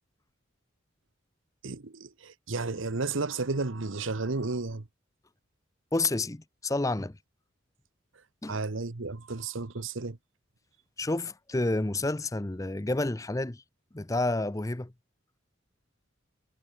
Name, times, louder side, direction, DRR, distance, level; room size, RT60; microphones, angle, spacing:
voice 1, 1.6-4.9 8.5-10.2, right 3 dB, 75° right, 1.1 m, -33 dB
voice 2, 5.9-7.1 8.4-8.6 11.0-13.6 13.9-14.9, left 2 dB, 15° left, 0.6 m, -29 dB
head